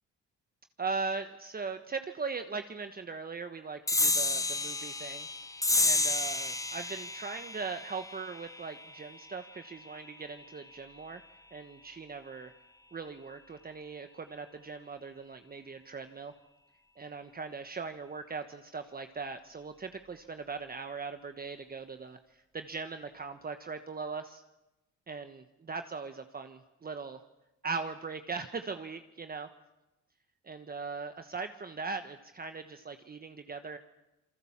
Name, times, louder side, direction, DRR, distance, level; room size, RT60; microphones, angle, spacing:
voice 1, 0.8-5.3 5.8-11.2 11.5-12.5 12.9-16.3 17.0-24.4 25.1-27.2 27.6-29.5 30.4-33.8, right 4 dB, 30° right, 8 dB, 1.3 m, -40 dB
sound 1, 3.9-10.7, left 2 dB, 10° left, 1.0 m, -32 dB
27.5 x 23.5 x 7.4 m, 0.98 s
cardioid pair, 90°, 30 cm